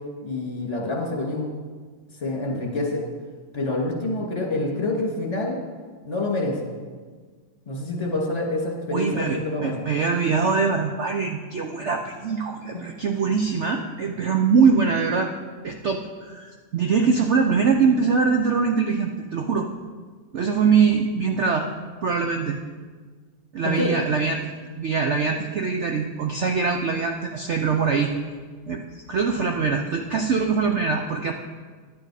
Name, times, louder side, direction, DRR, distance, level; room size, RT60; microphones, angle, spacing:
voice 1, 0.2-1.5 2.2-3.0 3.5-5.6 6.0-6.7 7.7-9.9 12.7-12.8 23.6-23.9, left 2 dB, 20° left, -1 dB, 2.0 m, -27 dB
voice 2, 8.9-15.3 15.6-19.7 20.3-21.7 22.0-22.6 23.5-24.4 24.8-28.1 28.7-28.8 29.1-31.3, right 5 dB, 85° right, 3 dB, 0.6 m, -23 dB
10.5 x 8.8 x 4.9 m, 1.5 s
omnidirectional pair, 2.0 m